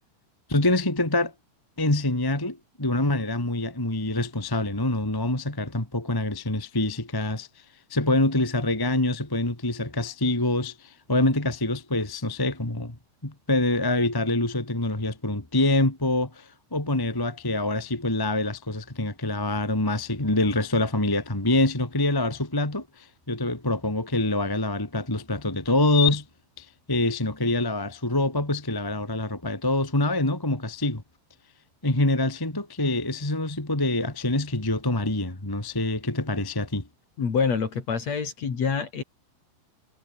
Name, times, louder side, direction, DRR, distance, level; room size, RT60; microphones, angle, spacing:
voice 1, 0.5-1.3 1.8-7.5 7.9-12.9 13.2-26.2 26.6-31.0 31.8-36.9, left 2 dB, 10° left, 1.6 m, -25 dB
voice 2, 37.2-39.0, left 5 dB, 45° left, 4.0 m, -26 dB
omnidirectional pair, 4.5 m